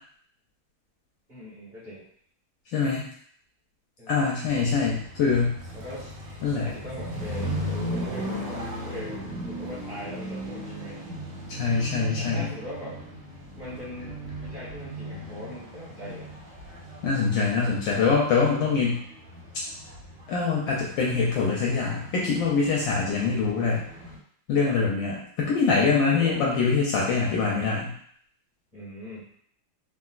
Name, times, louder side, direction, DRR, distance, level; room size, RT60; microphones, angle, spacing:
voice 1, 1.3-2.0 4.0-4.3 5.7-6.1 6.6-9.2 9.4-11.0 12.2-13.0 13.5-16.3 24.5-24.8 26.1-26.4 28.7-29.3, equal, 25° right, -10 dB, 1.3 m, -41 dB
voice 2, 2.7-3.0 4.1-5.6 6.4-6.7 11.5-12.5 17.0-19.0 20.3-23.9 24.5-27.9, left 4 dB, 75° left, -3 dB, 1.1 m, -24 dB
sound 1, 4.4-24.2, equal, 90° right, 1.7 m, -37 dB
3.7 x 2.3 x 2.4 m, 0.62 s
omnidirectional pair, 2.4 m